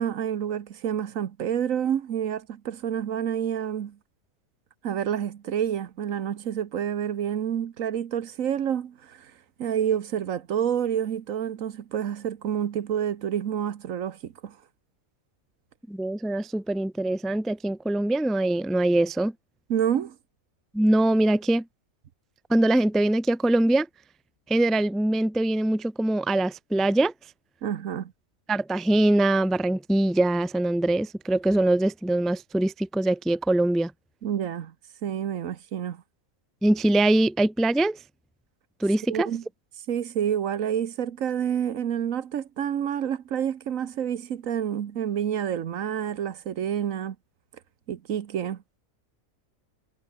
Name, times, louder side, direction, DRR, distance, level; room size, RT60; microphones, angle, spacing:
voice 1, 0.0-4.0 4.8-9.3 9.6-14.6 19.7-20.2 27.6-28.1 34.2-34.7 35.0-36.0 39.1-39.4 39.9-47.2 47.9-48.8, right 9 dB, 70° right, 1.4 m, -28 dB
voice 2, 15.9-19.3 20.7-21.6 22.5-23.9 24.5-27.1 28.5-33.9 36.6-38.0 38.8-39.3, right 1 dB, ahead, 0.5 m, -23 dB
omnidirectional pair, 1.4 m